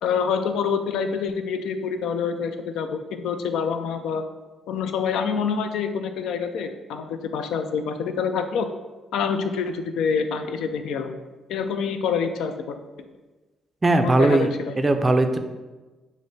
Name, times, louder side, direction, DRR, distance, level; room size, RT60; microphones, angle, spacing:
voice 1, 0.0-4.2 4.7-8.7 9.1-11.2 11.5-12.8 14.0-15.0, left 6 dB, 85° left, 8 dB, 0.3 m, -26 dB
voice 2, 13.8-14.5 14.8-15.4, right 2 dB, 25° right, 7 dB, 0.4 m, -19 dB
5.1 x 2.1 x 3.9 m, 1.2 s
cardioid pair, 90°, 0 cm